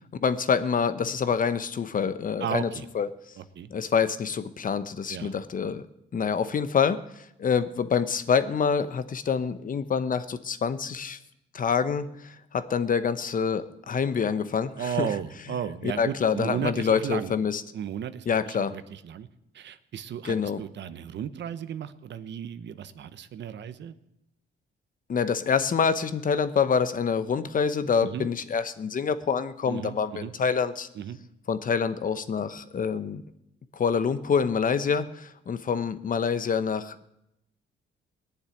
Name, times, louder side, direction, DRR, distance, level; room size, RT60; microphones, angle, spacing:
voice 1, 0.2-2.7 2.9-3.1 3.7-5.9 6.1-11.2 11.5-15.1 15.8-17.6 18.3-18.8 20.2-20.6 25.1-30.9 31.5-33.2 33.7-37.1, left 6 dB, 45° left, 13 dB, 1.0 m, -26 dB
voice 2, 2.4-2.9 3.4-3.7 5.1-5.3 14.8-17.3 17.7-19.3 19.5-23.9 28.0-28.3 29.7-30.3 31.0-31.2, right 9 dB, 65° right, 13 dB, 1.0 m, -34 dB
18.5 x 7.2 x 9.7 m, 0.85 s
cardioid pair, 90°, 20 cm